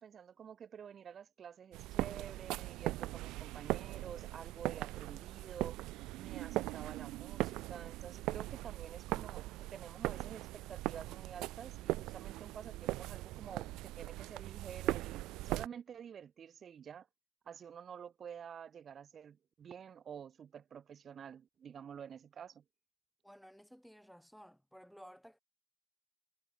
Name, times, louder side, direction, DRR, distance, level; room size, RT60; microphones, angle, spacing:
voice 1, 0.0-5.8 6.2-17.1 17.4-22.6, right 8 dB, 40° right, 4.6 m, -50 dB
sound 1, 1.7-15.7, right 18 dB, 65° right, 0.4 m, -40 dB
voice 2, 23.2-25.4, equal, ahead, 5.0 m, -56 dB
supercardioid pair, 90°, 0 cm